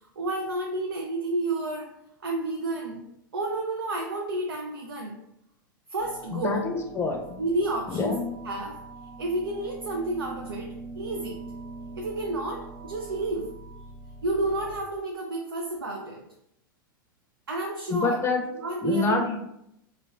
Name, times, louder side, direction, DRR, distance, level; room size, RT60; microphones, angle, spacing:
voice 1, 0.2-1.9 2.2-3.0 3.3-5.1 5.9-6.7 7.4-8.1 8.4-8.8 9.2-11.4 12.0-13.5 14.2-16.2 17.5-18.2 18.6-19.4, right 2 dB, 85° right, 1 dB, 0.4 m, -30 dB
sound 1, 6.0-14.8, right 3 dB, 50° right, 0.9 m, -43 dB
voice 2, 6.3-7.4 7.9-8.3 17.9-18.4 18.8-19.4, left 4 dB, 20° left, 3 dB, 0.5 m, -27 dB
2.4 x 2.1 x 3.2 m, 0.80 s
hypercardioid pair, 95°, 12 cm